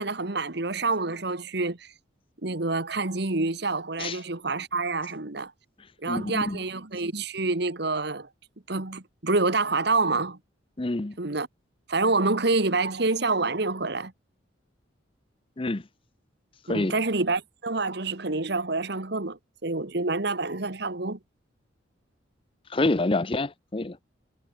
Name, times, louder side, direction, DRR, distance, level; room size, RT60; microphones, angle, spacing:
voice 1, 0.0-1.9 2.4-5.5 6.0-8.3 8.7-10.4 11.2-11.5 11.9-14.1 16.7-21.2, right 3 dB, 55° right, 1.6 m, -27 dB
voice 2, 6.1-6.6 10.8-11.2 15.6-15.8 16.7-17.0 22.7-24.0, left 2 dB, 25° left, 0.7 m, -27 dB
head